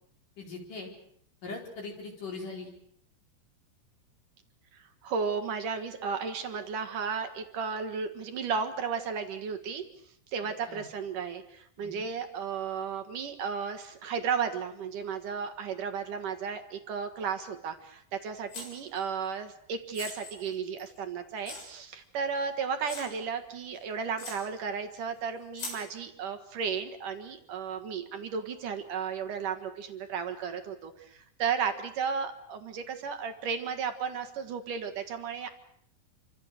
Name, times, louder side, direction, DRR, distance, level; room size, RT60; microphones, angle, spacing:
voice 1, 0.4-0.9 1.4-2.7 10.7-10.8 11.8-12.1, left 3 dB, 40° left, 0 dB, 5.6 m, -40 dB
voice 2, 4.7-9.8 10.3-35.5, right 6 dB, 60° right, 7 dB, 2.2 m, -34 dB
sound 1, 18.5-19.0 19.9-21.0 21.5-21.7 22.3-22.4 22.8-23.2 23.8-23.9 24.2-24.4 25.5-25.8, left 3 dB, 65° left, 9.8 m, -41 dB
29.0 x 25.5 x 6.6 m, 0.67 s
omnidirectional pair, 5.9 m